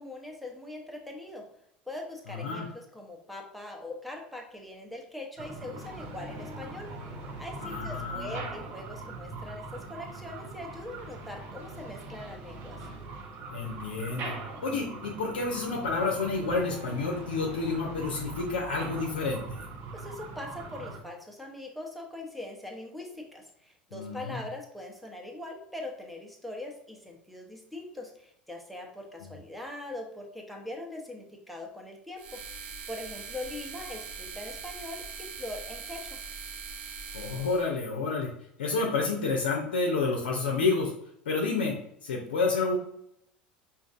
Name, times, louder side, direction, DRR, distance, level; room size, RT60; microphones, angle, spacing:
voice 1, 0.0-1.5 1.9-6.9 7.4-12.8 19.9-32.4 32.9-36.2, left 2 dB, ahead, 0 dB, 0.9 m, -41 dB
voice 2, 2.3-2.7 7.6-8.4 13.5-14.3 14.6-19.7 23.9-24.4 29.2-29.3 37.1-38.3 38.6-40.9 41.3-41.8 42.0-42.8, left 4 dB, 80° left, -1 dB, 0.6 m, -29 dB
sound 1, 5.4-21.0, right 3 dB, 50° right, 0.9 m, -41 dB
sound 2, 32.2-37.7, right 5 dB, 70° right, 0.6 m, -41 dB
5.0 x 2.6 x 2.5 m, 0.74 s
hypercardioid pair, 75°, 5 cm